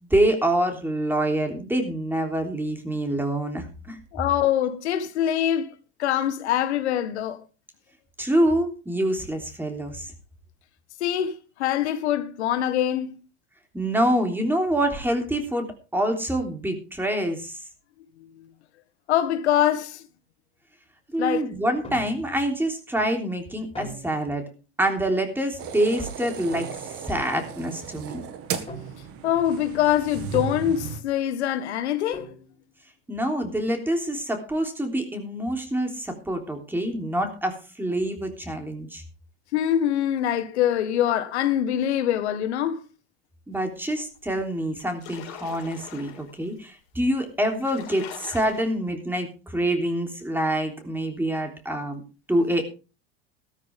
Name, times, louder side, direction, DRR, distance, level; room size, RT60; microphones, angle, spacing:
voice 1, 0.1-4.0 8.2-10.1 13.7-15.7 15.9-17.6 21.1-24.4 24.8-26.7 27.1-28.2 33.1-39.0 43.5-52.0 52.3-52.6, right 1 dB, 5° right, 3.3 m, -26 dB
voice 2, 4.1-7.4 11.0-11.3 11.6-13.1 19.1-20.0 21.2-21.5 29.2-32.2 39.5-42.8, left 11 dB, 85° left, 1.7 m, -24 dB
sound 1, 21.8-22.5 23.7-24.5 26.5-27.1 28.7-29.3 30.3-31.1 32.1-32.7, right 1 dB, 15° left, 4.4 m, -41 dB
sound 2, 25.6-31.0, right 8 dB, 45° right, 2.1 m, -35 dB
sound 3, 44.1-44.2 44.6-46.4 47.1-47.2 47.4-48.6, left 12 dB, 70° left, 4.1 m, -42 dB
14.5 x 13.0 x 3.6 m
supercardioid pair, 105°, 33 cm